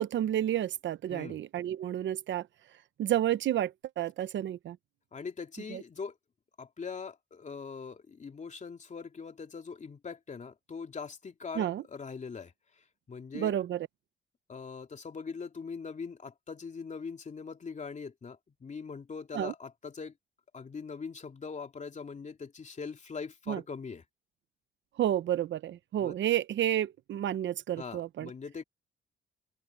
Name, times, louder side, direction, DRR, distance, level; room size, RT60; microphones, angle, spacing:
voice 1, 0.0-2.5 3.0-4.8 5.7-5.8 11.5-11.8 13.3-13.9 19.3-19.5 23.5-23.6 25.0-28.3, right 11 dB, 70° right, 1.0 m, -30 dB
voice 2, 1.1-1.4 5.1-6.2 6.6-13.6 14.5-20.1 20.5-24.0 26.0-26.1 27.8-28.6, left 5 dB, 35° left, 2.9 m, -42 dB
open air
cardioid pair, 90°, 20 cm